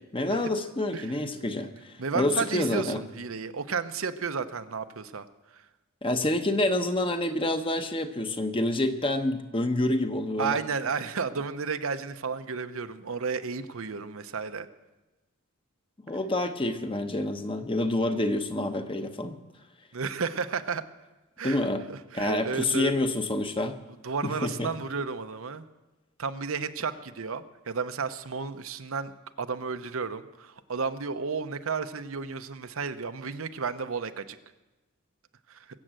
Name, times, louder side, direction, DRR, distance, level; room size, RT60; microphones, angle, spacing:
voice 1, 0.1-3.0 6.0-10.6 16.1-19.4 21.4-21.8 22.1-23.8 24.2-24.7, left 1 dB, 25° left, 7 dB, 0.9 m, -28 dB
voice 2, 2.0-5.3 10.4-14.7 19.9-20.8 21.4-22.9 24.0-25.6 26.2-29.1 29.4-34.4 35.5-35.6, right 5 dB, 75° right, 9 dB, 0.8 m, -32 dB
22.5 x 7.8 x 7.6 m, 1.1 s
head